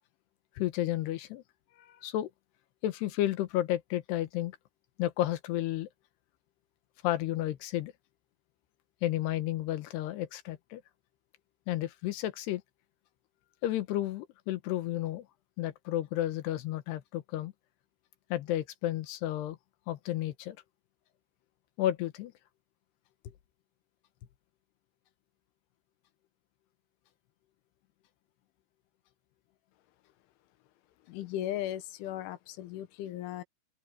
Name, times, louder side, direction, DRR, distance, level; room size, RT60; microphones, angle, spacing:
voice 1, 0.6-1.4 1.8-2.3 2.8-4.6 5.0-5.9 7.0-7.9 9.0-10.8 11.7-12.6 13.6-15.3 15.6-17.5 18.3-19.6 19.9-20.6 21.8-22.3, left 14 dB, 75° left, 3.0 m, -32 dB
voice 2, 31.1-33.4, left 12 dB, 90° left, 3.7 m, -37 dB
open air
omnidirectional pair, 5.3 m